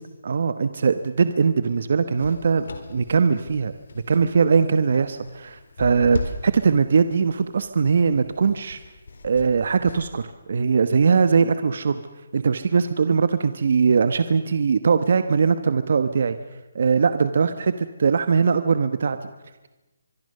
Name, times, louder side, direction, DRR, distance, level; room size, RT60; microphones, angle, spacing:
voice 1, 0.2-3.7 4.1-8.8 9.2-12.0 12.3-16.4 16.7-19.2, right 5 dB, 50° right, 11 dB, 1.1 m, -21 dB
sound 1, 2.2-10.3, left 3 dB, 70° left, 4.1 m, -38 dB
25.0 x 22.5 x 6.7 m, 1.1 s
hypercardioid pair, 175°, 0 cm